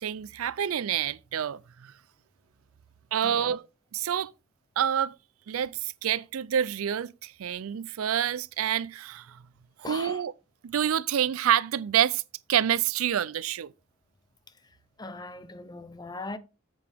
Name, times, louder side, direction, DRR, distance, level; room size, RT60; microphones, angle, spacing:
voice 1, 0.0-1.9 3.1-3.6 3.9-4.3 4.8-5.1 5.5-9.4 9.9-10.3 10.6-12.2 12.5-13.7, right 9 dB, 85° right, 0.4 m, -27 dB
voice 2, 3.2-3.6 9.8-10.2 15.0-16.4, left 3 dB, 20° left, 0.7 m, -39 dB
8.2 x 7.8 x 3.5 m
head